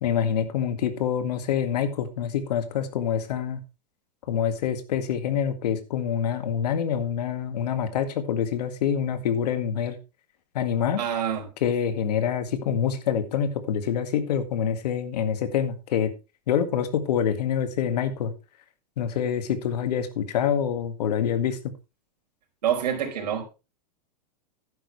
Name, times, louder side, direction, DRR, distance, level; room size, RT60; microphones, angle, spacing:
voice 1, 0.0-3.6 4.3-10.0 10.5-11.0 11.6-16.1 16.5-18.3 19.0-21.7, left 8 dB, 75° left, 1.9 m, -26 dB
voice 2, 11.0-11.5 22.6-23.4, right 9 dB, 80° right, 4.5 m, -26 dB
11.5 x 10.5 x 3.2 m
supercardioid pair, 140°, 21 cm